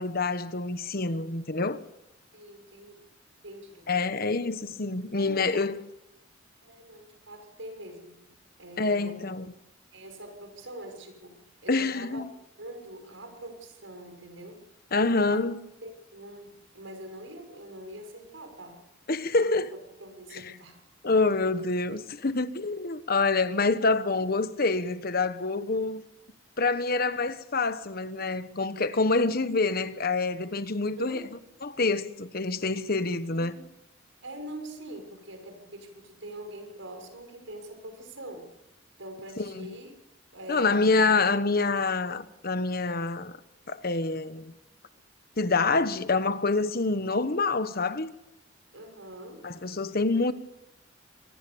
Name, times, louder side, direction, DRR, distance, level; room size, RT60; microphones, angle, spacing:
voice 1, 0.0-1.8 3.9-5.8 8.8-9.5 11.7-12.3 14.9-15.6 19.1-19.7 20.3-20.4 21.0-26.0 26.6-31.2 31.6-33.6 39.4-39.7 40.5-43.4 43.7-44.5 45.4-48.1 49.4-50.3, left 3 dB, 50° left, 1.2 m, -26 dB
voice 2, 2.3-3.1 3.4-4.4 5.1-5.5 6.6-8.2 8.6-9.3 9.9-11.4 11.6-12.2 12.6-14.6 15.2-15.4 15.8-18.8 19.3-20.8 26.9-27.1 31.0-31.3 33.3-33.7 34.2-38.4 39.0-39.9 40.3-40.9 48.7-49.5, right 1 dB, 85° right, 6.4 m, -44 dB
26.5 x 19.5 x 7.1 m
head